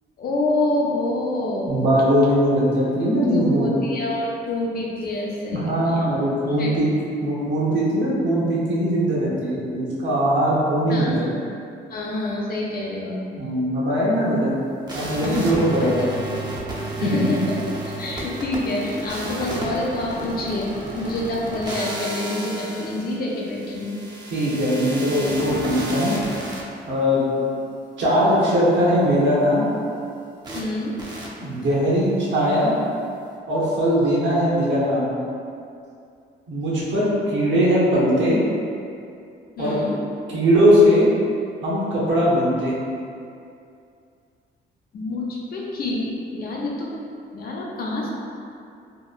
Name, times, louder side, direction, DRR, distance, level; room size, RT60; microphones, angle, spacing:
voice 1, 0.2-1.8 3.3-6.2 6.6-6.7 10.9-11.4 11.9-13.3 15.2-16.1 17.0-17.6 18.0-20.7 21.0-24.0 30.5-31.0 39.6-40.0 44.9-47.0 47.3-48.1, left 2 dB, 50° left, -3 dB, 0.5 m, -27 dB
voice 2, 1.7-3.7 5.5-6.9 7.2-11.3 13.4-14.5 14.9-16.1 17.0-17.1 24.3-26.1 26.9-27.2 28.0-29.7 31.4-32.7 33.5-35.1 36.5-38.4 39.6-39.8 40.3-41.1 41.6-42.7, equal, 70° right, -7 dB, 0.8 m, -20 dB
sound 1, 14.9-26.6 30.4-30.6 31.0-31.3, right 1 dB, 20° right, 0.4 m, -32 dB
2.8 x 2.1 x 2.4 m, 2.5 s
cardioid pair, 90°, 20 cm